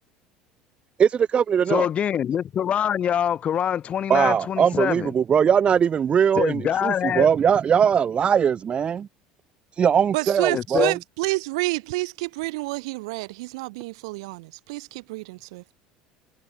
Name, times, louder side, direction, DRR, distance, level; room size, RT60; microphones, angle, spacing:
voice 1, 1.0-1.9 4.1-9.1 9.8-11.0, right 7 dB, 35° right, 0.8 m, -20 dB
voice 2, 1.7-5.1 6.4-7.3 10.5-10.9, left 9 dB, 40° left, 1.0 m, -24 dB
voice 3, 10.1-15.6, right 23 dB, 70° right, 3.9 m, -29 dB
hypercardioid pair, 70°, 3 cm